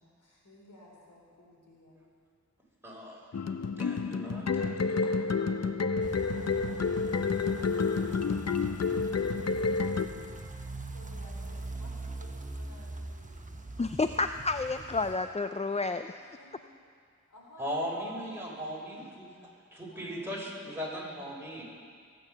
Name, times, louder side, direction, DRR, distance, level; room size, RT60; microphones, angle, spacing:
voice 1, 0.0-2.0 10.9-13.6 16.2-16.7 17.3-18.8 19.9-20.6, left 1 dB, 80° left, -3 dB, 4.0 m, -55 dB
voice 2, 2.8-3.2 3.8-5.3 17.6-19.3 19.7-21.6, equal, 10° right, -4 dB, 5.5 m, -38 dB
sound 1, 3.3-10.1, left 4 dB, 55° left, 0.8 m, -29 dB
sound 2, 6.0-15.1, right 2 dB, 25° right, 1.2 m, -42 dB
voice 3, 13.8-16.2, left 3 dB, 20° left, 9 dB, 0.4 m, -30 dB
21.5 x 9.3 x 6.7 m, 2.1 s
cardioid pair, 45°, 31 cm